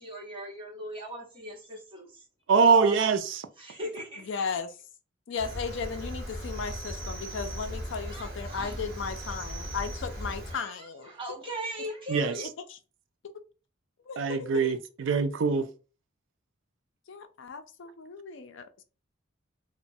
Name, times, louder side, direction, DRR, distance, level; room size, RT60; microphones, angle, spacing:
voice 1, 0.0-2.2 2.6-3.0 3.6-4.3 8.0-8.8 10.5-12.5, right 1 dB, 25° right, 0.9 m, -39 dB
voice 2, 2.5-3.4 12.1-12.4 14.2-15.7, right 5 dB, 70° right, 0.4 m, -23 dB
voice 3, 4.2-4.8 5.3-11.1 12.7-12.8 13.2-13.3 14.0-14.7 17.1-18.8, left 5 dB, 70° left, 0.4 m, -36 dB
Cricket, 5.4-10.5, equal, 50° right, 0.9 m, -37 dB
2.9 x 2.1 x 2.6 m
head